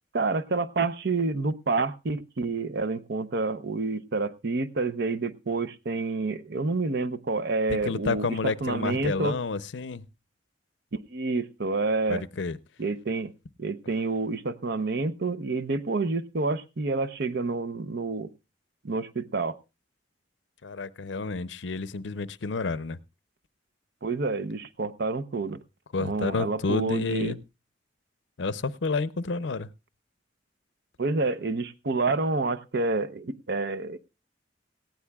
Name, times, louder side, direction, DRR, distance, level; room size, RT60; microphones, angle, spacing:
voice 1, 0.1-9.4 10.9-12.2 12.8-13.3 13.6-18.3 18.8-19.6 24.0-25.6 26.0-27.3 31.0-34.0, right 3 dB, 60° right, 0.8 m, -28 dB
voice 2, 7.7-10.0 12.1-12.6 20.6-23.0 25.9-27.4 28.4-29.7, left 4 dB, 75° left, 0.6 m, -30 dB
18.0 x 15.5 x 2.3 m
head